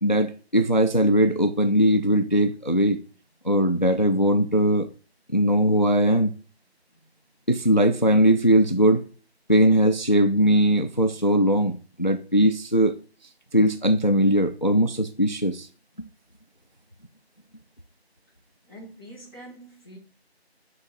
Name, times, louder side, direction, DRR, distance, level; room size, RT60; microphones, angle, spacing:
voice 1, 0.0-3.0 3.4-4.9 5.3-6.3 7.5-9.0 9.5-12.9 13.5-15.7, equal, 45° left, 0.4 m, -20 dB
voice 2, 18.7-20.0, right 1 dB, 20° right, 1.9 m, -44 dB
7.3 x 3.8 x 4.4 m
figure-of-eight pair, 180°, 33 cm